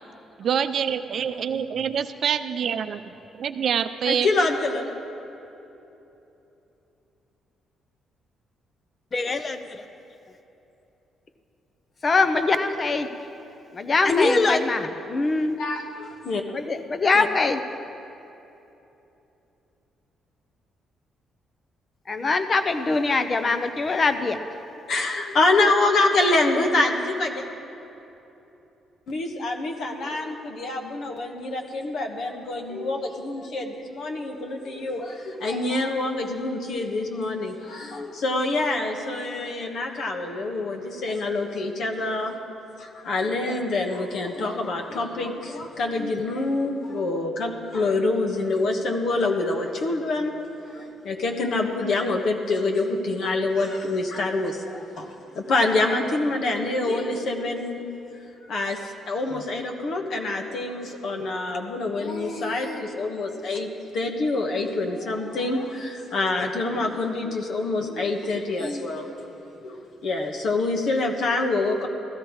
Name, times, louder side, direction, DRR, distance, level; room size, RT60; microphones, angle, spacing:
voice 1, 0.4-3.0 3.4-4.3, right 8 dB, 60° right, 11 dB, 0.5 m, -25 dB
voice 2, 4.1-4.8 15.6-16.4 24.9-27.4 29.1-42.3 42.8-50.3 50.7-55.1 55.3-57.9 58.5-58.8 59.1-63.7 63.9-69.2 69.6-71.9, left 2 dB, 70° left, 3 dB, 1.3 m, -26 dB
voice 3, 9.1-9.6 12.0-13.1 13.7-15.6 16.5-17.6 22.1-24.4 71.8-71.9, left 3 dB, 35° left, 9 dB, 0.8 m, -22 dB
15.0 x 13.0 x 4.8 m, 3.0 s
cardioid pair, 90°, 0 cm